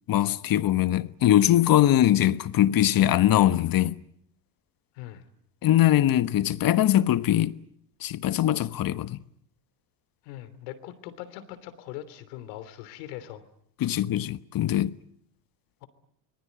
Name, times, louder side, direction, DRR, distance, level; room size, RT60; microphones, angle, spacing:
voice 1, 0.1-4.0 5.6-7.6 8.0-9.2 13.8-15.0, left 12 dB, 45° left, 1.3 m, -22 dB
voice 2, 4.9-5.3 10.2-13.4, left 13 dB, 75° left, 3.3 m, -41 dB
25.5 x 21.5 x 9.5 m
supercardioid pair, 90°, 49 cm